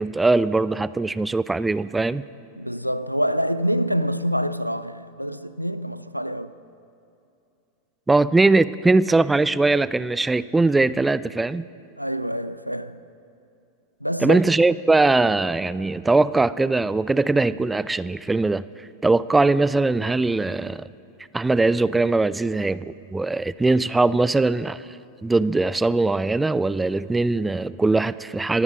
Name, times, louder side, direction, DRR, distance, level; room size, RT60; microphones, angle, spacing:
voice 1, 0.0-2.2 8.1-11.6 14.2-18.7 19.0-20.9 21.3-24.8 25.2-28.6, right 3 dB, 10° right, 0.3 m, -21 dB
voice 2, 2.6-6.5 12.0-13.0 14.0-14.4, equal, 90° right, 0.4 m, -26 dB
24.5 x 9.6 x 5.1 m
figure-of-eight pair, 90°, 0 cm